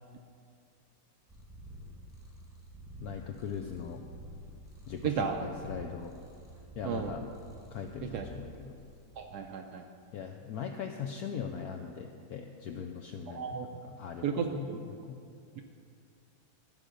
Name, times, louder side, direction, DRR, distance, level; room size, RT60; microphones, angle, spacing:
Purr, 1.3-9.4, equal, ahead, 0.9 m, -49 dB
voice 1, 3.0-4.0 4.9-6.1 6.8-7.2 7.7-8.8 10.1-13.5 13.8-15.2, left 7 dB, 80° left, 4 dB, 0.8 m, -40 dB
voice 2, 5.0-5.4 6.8-7.1 8.0-8.3 9.2-9.9 13.3-13.8 14.2-14.8 15.6-15.7, right 7 dB, 75° right, 4 dB, 0.9 m, -34 dB
13.0 x 5.0 x 6.3 m, 2.4 s
omnidirectional pair, 2.1 m